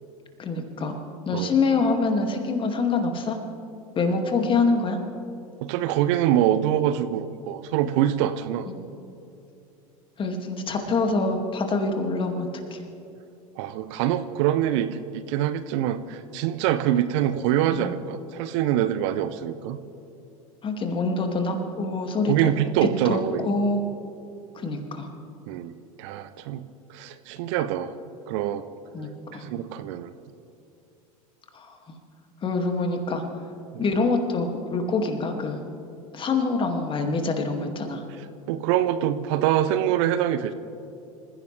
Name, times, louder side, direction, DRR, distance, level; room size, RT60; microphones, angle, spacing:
voice 1, 0.4-1.0 1.2-3.4 4.0-5.0 8.7-8.8 10.2-12.8 17.7-17.9 20.6-22.5 22.8-23.8 24.5-25.1 28.9-29.5 31.5-32.0 32.4-33.2 33.8-35.6 36.1-38.0, left 3 dB, 30° left, 4 dB, 2.3 m, -25 dB
voice 2, 5.6-8.7 13.6-19.8 22.3-23.5 25.5-25.7 26.0-26.6 26.9-27.9 28.3-28.7 29.3-30.1 33.7-33.8 38.5-40.5, right 11 dB, 55° right, 12 dB, 0.8 m, -24 dB
27.0 x 15.5 x 3.4 m, 2.7 s
figure-of-eight pair, 80°, 19 cm